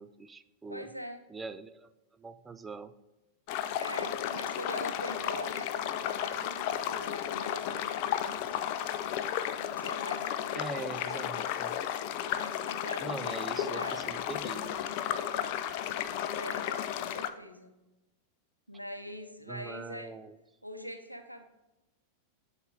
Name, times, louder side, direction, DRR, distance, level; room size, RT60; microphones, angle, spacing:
voice 1, 0.0-0.9 1.3-1.9 2.2-2.9 10.5-11.8 13.0-14.8 19.5-20.4, right 4 dB, 15° right, 11 dB, 0.4 m, -42 dB
voice 2, 0.7-1.2 3.8-8.6 9.6-11.3 12.3-14.0 16.3-17.7 18.7-20.1 20.6-21.4, equal, 90° left, 7 dB, 0.7 m, -43 dB
sound 1, 3.5-17.3, left 10 dB, 45° left, 0.4 m, -33 dB
10.5 x 4.1 x 3.4 m, 1.0 s
figure-of-eight pair, 90°, 0 cm